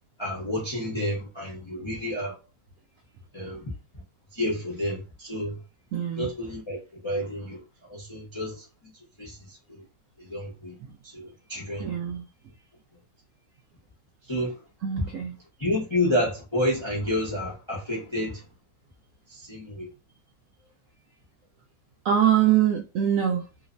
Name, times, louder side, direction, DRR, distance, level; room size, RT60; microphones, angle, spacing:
voice 1, 0.2-2.4 3.3-3.7 4.3-5.6 6.2-8.6 9.2-9.8 10.2-10.7 11.0-12.0 14.2-14.6 15.6-18.4 19.3-19.9, left 1 dB, 50° left, 0.3 m, -30 dB
voice 2, 5.9-6.3 10.8-10.9 11.8-12.2 14.8-15.3 22.0-23.4, right 10 dB, 75° right, 0.7 m, -23 dB
3.1 x 2.0 x 2.4 m
omnidirectional pair, 1.9 m